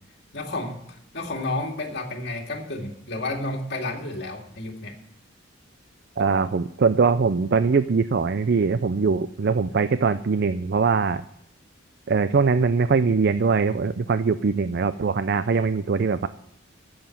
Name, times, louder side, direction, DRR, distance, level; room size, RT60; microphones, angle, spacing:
voice 1, 0.3-0.8 1.1-4.9, left 2 dB, 55° left, 1 dB, 2.4 m, -31 dB
voice 2, 6.2-11.2 12.1-16.3, right 5 dB, 55° right, 13 dB, 0.4 m, -22 dB
11.0 x 7.9 x 9.2 m, 0.74 s
head